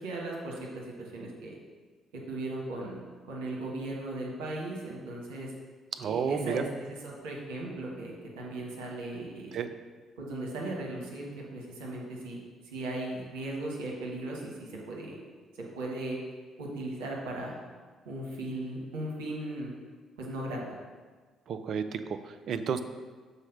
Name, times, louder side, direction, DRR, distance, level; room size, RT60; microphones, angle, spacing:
voice 1, 0.0-1.5 2.3-3.0 3.3-5.5 6.0-9.6 10.2-12.4 12.7-15.2 15.6-16.2 16.6-17.5 18.0-19.7 20.2-20.8, right 2 dB, 65° right, -2 dB, 1.4 m, -37 dB
voice 2, 5.9-6.6 9.5-9.7 21.5-22.8, right 6 dB, 50° right, 9 dB, 0.4 m, -31 dB
6.5 x 4.3 x 5.3 m, 1.4 s
figure-of-eight pair, 45°, 0 cm